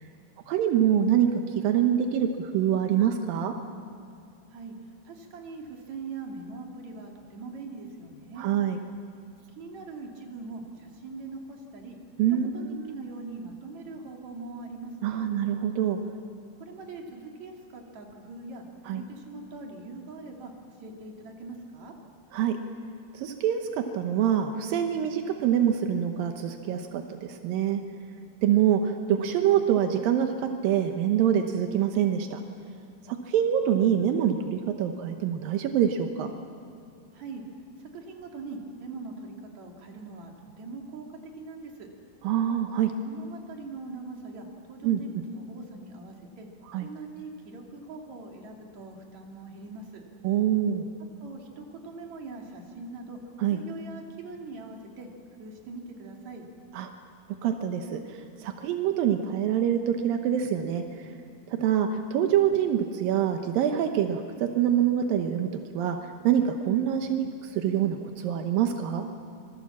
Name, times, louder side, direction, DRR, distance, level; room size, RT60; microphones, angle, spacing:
voice 1, 0.5-3.5 8.4-8.8 12.2-13.0 15.0-16.0 18.9-19.0 22.3-22.6 23.1-27.8 28.4-32.4 33.1-36.3 42.2-42.9 44.8-45.0 46.7-46.9 50.2-50.9 53.4-53.6 56.7-56.9 57.4-61.1 61.5-66.0 66.2-69.0, right 9 dB, 80° right, 5 dB, 2.0 m, -25 dB
voice 2, 5.0-8.5 9.6-12.0 12.5-15.2 16.6-21.9 37.1-37.4 37.8-41.9 43.0-46.5 46.8-50.0 51.2-53.2 53.5-55.1 55.4-56.4, right 3 dB, 45° right, 1 dB, 3.3 m, -42 dB
26.0 x 23.0 x 7.3 m, 2.4 s
omnidirectional pair, 5.4 m